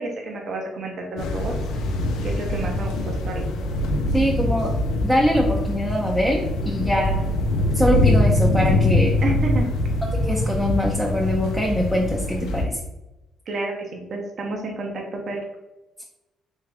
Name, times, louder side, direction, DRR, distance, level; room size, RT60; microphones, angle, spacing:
voice 1, 0.0-1.5 2.2-3.4 9.2-9.6 13.5-15.4, right 2 dB, 55° right, 0 dB, 0.8 m, -30 dB
sound 1, 1.2-12.7, left 1 dB, 85° left, 0.5 m, -23 dB
voice 2, 4.1-4.8 5.0-7.2 7.7-9.1 10.2-12.8, equal, 5° right, -2 dB, 0.7 m, -23 dB
3.6 x 3.2 x 3.4 m, 0.99 s
cardioid pair, 90°, 0 cm